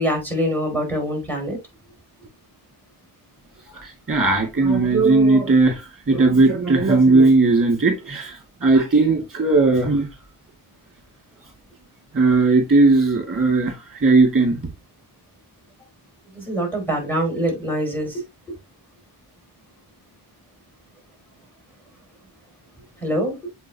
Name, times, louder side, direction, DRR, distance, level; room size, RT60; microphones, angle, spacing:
voice 1, 0.0-1.6 16.3-18.2 23.0-23.4, equal, 5° left, 4.6 m, -24 dB
voice 2, 3.8-5.8 6.1-8.4 8.6-10.1 12.1-13.7 14.0-14.6, right 3 dB, 25° right, 2.1 m, -17 dB
7.4 x 5.1 x 2.9 m
wide cardioid pair, 65°, 50 cm